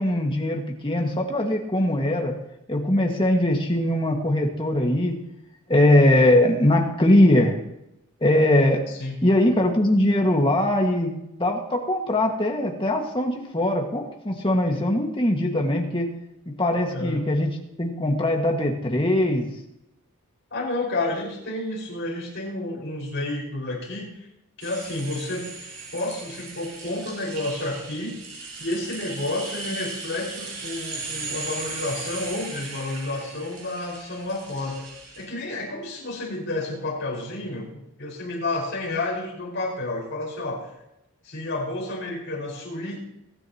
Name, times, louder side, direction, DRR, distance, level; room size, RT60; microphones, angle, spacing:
voice 1, 0.0-2.4 2.7-5.2 5.7-7.6 8.2-8.8 9.2-16.1 16.5-17.5 17.8-19.5, left 1 dB, 25° left, 1 dB, 1.9 m, -21 dB
voice 2, 8.9-9.2 16.9-17.2 20.5-24.3 24.6-25.5 25.9-28.2 28.6-34.8 35.2-40.7 41.2-43.0, left 2 dB, 55° left, -4 dB, 5.6 m, -30 dB
sound 1, 24.6-35.2, right 3 dB, 75° right, 5.0 m, -37 dB
23.5 x 10.5 x 3.0 m, 0.85 s
head